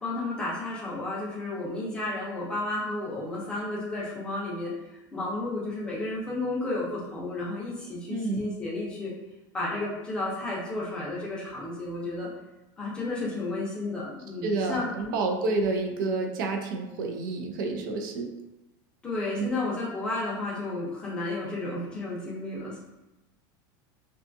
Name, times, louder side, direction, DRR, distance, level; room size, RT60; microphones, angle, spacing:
voice 1, 0.0-4.7 5.1-9.1 9.5-12.3 12.8-14.9 19.0-22.8, left 2 dB, 10° left, -6 dB, 0.5 m, -32 dB
voice 2, 8.1-8.4 14.4-18.3 19.4-19.6, right 3 dB, 70° right, 3 dB, 0.4 m, -29 dB
2.5 x 2.3 x 2.5 m, 1.0 s
supercardioid pair, 180°, 11 cm